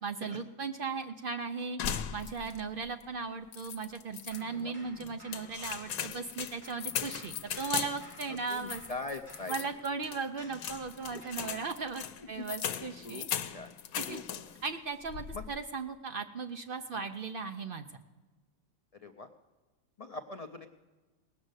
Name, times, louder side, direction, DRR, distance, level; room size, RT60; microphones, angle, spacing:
voice 1, 0.0-8.8 9.5-13.3 14.0-14.2 14.6-17.9, right 4 dB, 60° right, 7 dB, 0.6 m, -37 dB
sound 1, 1.8-2.7 3.0-3.1 3.5-4.4 5.0-14.7 15.0-15.6, left 9 dB, 85° left, 1.1 m, -39 dB
sound 2, 4.3-6.4 6.6-11.5, left 1 dB, 20° left, 3.5 m, -55 dB
voice 2, 8.3-9.6 11.1-11.2 12.4-12.5 13.0-13.2 13.5-13.7 14.1-14.2 15.3-15.4 16.9-17.1 19.0-19.3 20.0-20.7, left 3 dB, 65° left, 7 dB, 0.3 m, -42 dB
18.5 x 6.4 x 8.0 m, 1.2 s
omnidirectional pair, 1.4 m